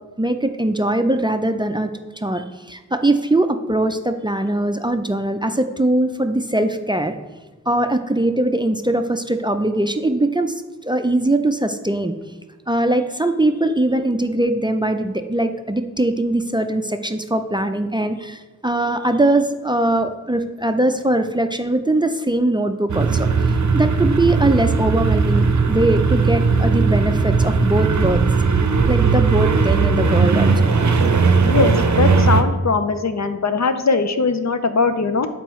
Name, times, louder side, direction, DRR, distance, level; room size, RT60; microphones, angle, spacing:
voice 1, 0.2-1.9 2.2-7.1 7.7-12.1 12.7-23.3 23.7-28.2 28.9-30.7, right 1 dB, 15° right, 7 dB, 0.4 m, -21 dB
sound 1, 22.9-32.4, right 4 dB, 70° right, 0.6 m, -17 dB
voice 2, 31.4-35.3, left 4 dB, 65° left, 9 dB, 0.5 m, -20 dB
7.7 x 4.5 x 3.1 m, 1.2 s
wide cardioid pair, 55°, 30 cm